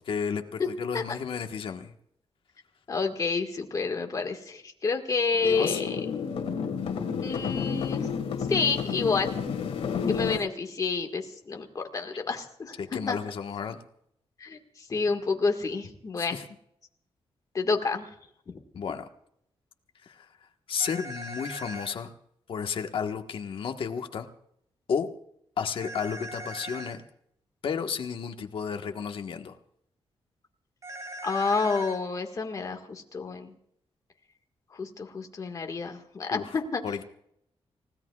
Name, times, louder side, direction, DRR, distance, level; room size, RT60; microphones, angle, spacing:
voice 1, 0.0-1.9 5.4-5.8 12.8-13.8 16.2-16.4 18.7-19.1 20.0-20.3 20.7-22.1 22.5-24.3 24.9-25.1 25.6-27.0 27.6-29.5 36.3-36.6 36.8-37.0, left 6 dB, 60° left, 5 dB, 1.4 m, -32 dB
voice 2, 2.9-6.0 7.2-8.1 8.5-9.4 10.1-12.8 13.1-13.2 14.4-16.4 17.5-18.1 18.5-18.6 31.2-33.5 34.7-36.8, left 4 dB, 35° left, 4 dB, 1.8 m, -29 dB
sound 1, 5.3-10.4, left 6 dB, 75° left, 2.1 m, -31 dB
sound 2, 20.8-21.9 25.8-27.0 30.8-32.0, right 1 dB, 35° right, 4.1 m, -40 dB
30.0 x 17.0 x 2.4 m, 0.74 s
wide cardioid pair, 180°, 10 cm